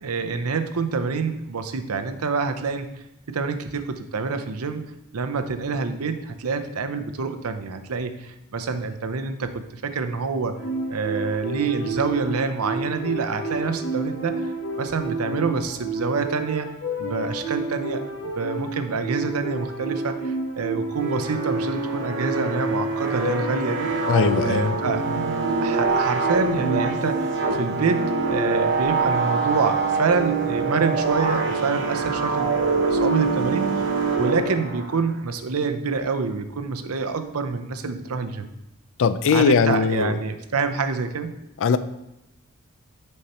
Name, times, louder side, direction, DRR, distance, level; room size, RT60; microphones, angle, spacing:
voice 1, 0.0-2.9 3.3-4.8 5.1-10.5 10.9-14.5 14.8-16.7 17.0-23.9 24.4-25.1 25.6-33.7 34.2-38.5 39.3-41.3, right 4 dB, 75° right, 8 dB, 0.7 m, -27 dB
sound 1, 10.5-28.7, right 2 dB, 80° left, 1.7 m, -30 dB
sound 2, 20.9-35.1, right 3 dB, 60° right, 1.1 m, -25 dB
voice 2, 24.1-24.7 39.0-40.2 41.6-41.8, left 6 dB, 60° left, 13 dB, 0.4 m, -20 dB
6.6 x 5.6 x 4.2 m, 0.92 s
head